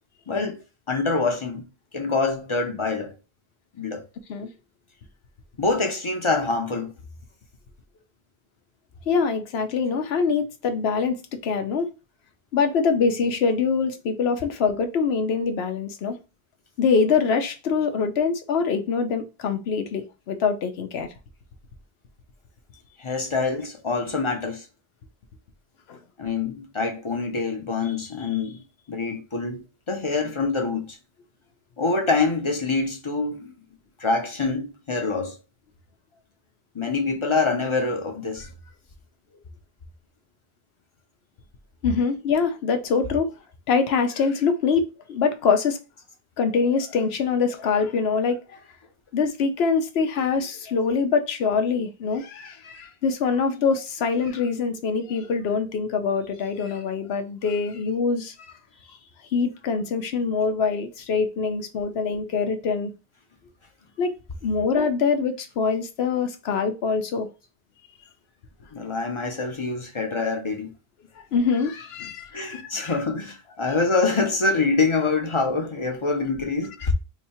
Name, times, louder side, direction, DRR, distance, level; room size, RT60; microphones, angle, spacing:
voice 1, 0.3-0.6 0.9-1.7 1.9-3.1 3.8-4.0 5.6-6.9 23.0-24.7 26.2-31.0 31.8-33.5 34.0-35.4 36.7-38.5 68.7-70.7 72.3-76.9, left 3 dB, 35° left, 0.6 m, -25 dB
voice 2, 9.1-11.9 12.5-16.2 16.8-21.1 25.9-26.0 41.8-43.3 43.7-45.8 46.4-48.6 49.1-58.5 59.3-62.9 64.0-64.1 64.4-67.3 71.3-72.9, left 5 dB, 75° left, 0.9 m, -24 dB
2.9 x 2.7 x 4.2 m
omnidirectional pair, 1.1 m